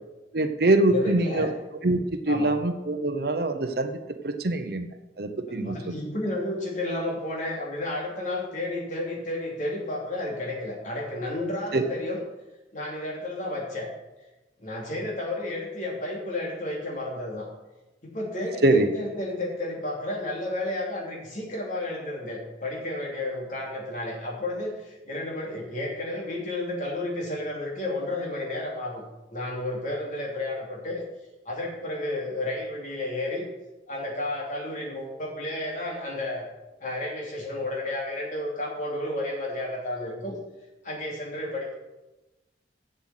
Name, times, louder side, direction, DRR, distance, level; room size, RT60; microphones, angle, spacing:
voice 1, 0.3-1.5 1.8-2.0 2.3-3.9 4.2-4.9 5.2-5.8 11.7-11.8 18.6-18.9, right 2 dB, 55° right, 8 dB, 0.8 m, -23 dB
voice 2, 0.9-1.6 2.3-2.5 5.5-12.2 12.7-13.9 14.6-17.5 18.0-29.0 29.3-31.0 31.4-33.5 33.9-36.4 36.8-40.4 40.8-41.7, left 1 dB, 45° left, -2 dB, 2.9 m, -32 dB
7.9 x 7.5 x 8.1 m, 1.0 s
head